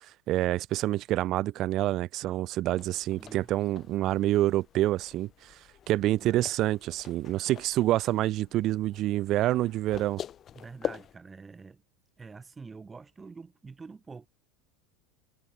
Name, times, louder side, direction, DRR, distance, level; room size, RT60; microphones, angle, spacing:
voice 1, 0.3-5.3 5.9-10.2, right 15 dB, 35° right, 0.3 m, -27 dB
sound 1, 2.8-11.2, left 10 dB, 25° left, 0.7 m, -44 dB
voice 2, 3.1-3.5 6.2-6.5 10.5-11.8 12.2-14.3, right 4 dB, 10° right, 4.5 m, -46 dB
supercardioid pair, 155°, 0 cm